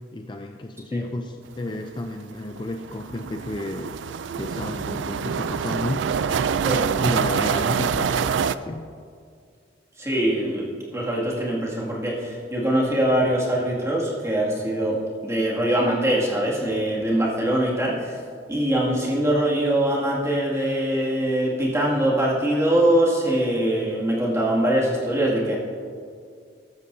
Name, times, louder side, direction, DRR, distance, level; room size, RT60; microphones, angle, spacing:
voice 1, 0.1-4.0 4.3-6.5 7.0-8.9, left 2 dB, 25° left, 5 dB, 0.4 m, -32 dB
sound 1, 1.7-1.8 2.1-2.2 2.6-8.5, right 6 dB, 75° right, 0.3 m, -25 dB
voice 2, 10.0-15.0 15.2-18.2 18.5-25.6, right 1 dB, 15° right, -5 dB, 2.2 m, -23 dB
14.0 x 12.0 x 2.7 m, 2.2 s
head